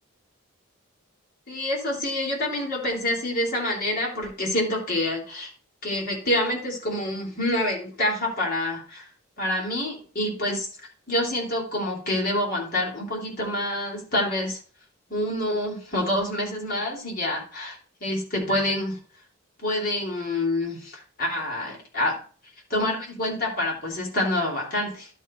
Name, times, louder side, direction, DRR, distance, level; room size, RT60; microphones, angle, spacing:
voice 1, 1.5-5.5 5.8-9.1 9.4-10.7 11.1-14.6 15.1-19.0 19.6-22.2 22.7-25.1, left 1 dB, 45° left, -2 dB, 3.7 m, -27 dB
11.5 x 4.7 x 4.5 m, 0.40 s
head